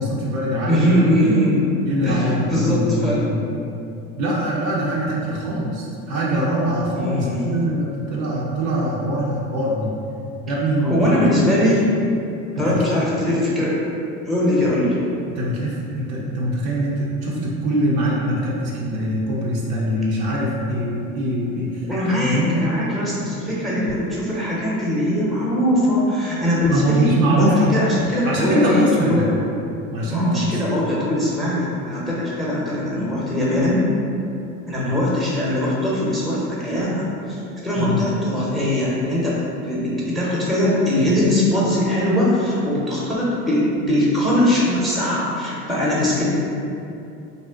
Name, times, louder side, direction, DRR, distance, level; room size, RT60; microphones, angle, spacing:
voice 1, 0.0-1.0 1.8-3.4 4.2-9.9 10.5-11.4 12.6-12.9 15.3-21.9 22.2-22.6 23.8-23.9 26.6-27.7 28.2-29.3 29.9-30.6 34.9-35.0 37.8-38.0, equal, 70° right, -5 dB, 0.7 m, -23 dB
voice 2, 0.7-1.6 2.0-3.3 7.0-7.4 10.8-11.8 12.6-13.8 14.2-15.0 21.9-29.4 30.1-33.8 34.7-46.3, left 1 dB, ahead, -6 dB, 0.7 m, -21 dB
2.6 x 2.1 x 3.5 m, 2.6 s
hypercardioid pair, 80°, 43 cm